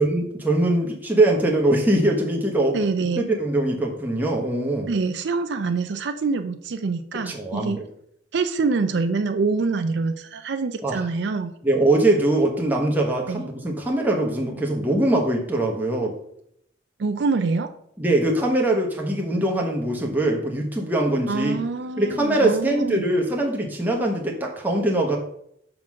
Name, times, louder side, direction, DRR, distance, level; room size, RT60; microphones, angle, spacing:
voice 1, 0.0-2.8 3.2-4.9 7.1-7.8 10.8-11.0 11.6-16.2 18.0-21.6 22.0-25.2, right 1 dB, 10° right, 0 dB, 1.1 m, -22 dB
voice 2, 2.7-3.2 4.9-7.8 8.3-11.5 13.3-13.4 17.0-17.7 21.3-23.1, right 4 dB, 60° right, 8 dB, 0.4 m, -25 dB
6.0 x 3.8 x 6.1 m, 0.72 s
head